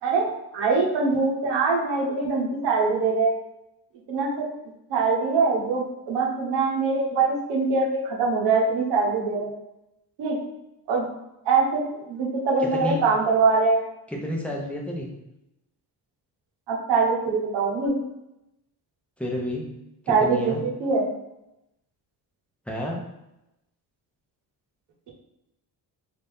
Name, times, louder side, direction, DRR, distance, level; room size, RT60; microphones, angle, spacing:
voice 1, 0.0-3.3 4.1-4.4 4.9-9.5 10.2-10.4 10.9-11.1 11.4-11.8 12.1-13.8 16.7-18.0 20.1-20.5 20.8-21.1, right 4 dB, 90° right, -1 dB, 1.1 m, -23 dB
voice 2, 12.7-13.0 14.1-15.1 19.2-19.6 20.1-20.6 22.7-23.0, left 1 dB, 5° left, -2 dB, 0.7 m, -30 dB
3.3 x 2.7 x 3.5 m, 0.89 s
cardioid pair, 115°, 41 cm